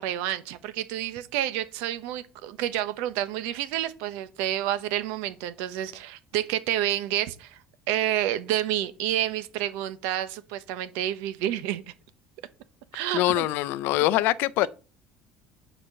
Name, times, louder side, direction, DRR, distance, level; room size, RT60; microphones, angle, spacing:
voice 1, 0.0-7.6 7.9-11.8 12.9-13.5, right 12 dB, 85° right, 1.0 m, -29 dB
voice 2, 13.1-14.7, left 16 dB, 70° left, 0.5 m, -23 dB
9.9 x 4.4 x 6.6 m
cardioid pair, 140°, 3 cm